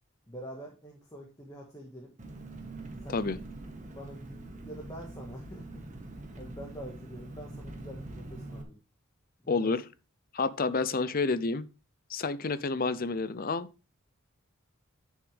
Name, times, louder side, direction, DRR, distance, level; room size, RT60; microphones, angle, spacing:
voice 1, 0.3-2.1 3.0-3.2 3.9-8.8 9.4-9.7, equal, 15° left, 1.8 m, -46 dB
Engine, 2.2-8.6, right 2 dB, 35° right, 1.6 m, -44 dB
voice 2, 9.5-9.8 10.3-11.7 12.1-13.7, left 3 dB, 40° left, 0.6 m, -29 dB
11.5 x 6.4 x 3.5 m
head